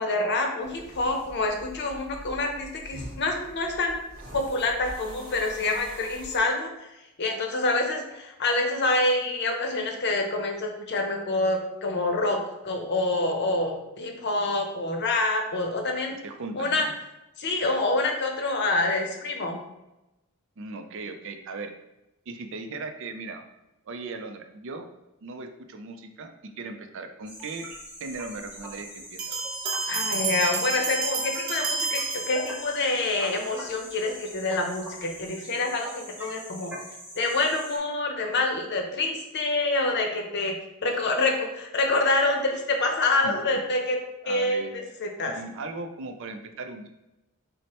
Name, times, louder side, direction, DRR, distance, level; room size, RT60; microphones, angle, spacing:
voice 1, 0.0-4.0 4.3-6.9 7.2-12.4 12.6-16.2 16.5-16.9 17.4-19.6 29.9-36.7 37.2-40.6 40.8-44.0 44.3-45.3, left 2 dB, 55° left, 3 dB, 0.7 m, -26 dB
sound 1, 0.6-6.4, right 1 dB, 45° right, 1.2 m, -44 dB
voice 2, 16.2-16.9 20.6-21.7 22.3-23.4 23.9-24.9 25.2-27.7 28.0-29.4 43.2-43.4 44.2-44.7 45.3-46.9, right 3 dB, 65° right, 7 dB, 0.5 m, -38 dB
sound 2, 27.3-37.8, equal, 5° right, 0.8 m, -42 dB
Bell, 29.2-33.0, right 4 dB, 85° right, 0.8 m, -30 dB
6.1 x 2.1 x 2.9 m, 0.96 s
head